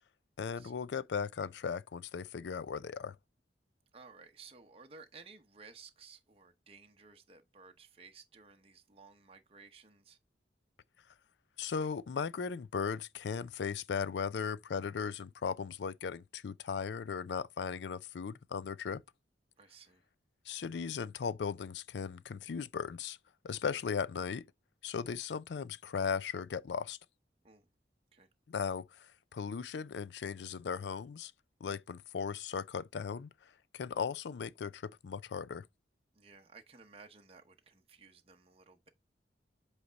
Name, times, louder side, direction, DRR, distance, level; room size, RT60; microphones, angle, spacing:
voice 1, 0.4-3.2 11.6-19.0 20.5-23.2 23.4-24.5 24.8-27.0 28.5-31.3 31.6-33.3 33.7-35.6, left 6 dB, 75° left, 0.4 m, -37 dB
voice 2, 3.9-10.2 19.6-20.0 27.4-27.7 28.1-28.3 36.1-38.9, right 4 dB, 35° right, 0.8 m, -56 dB
7.9 x 3.3 x 3.9 m
head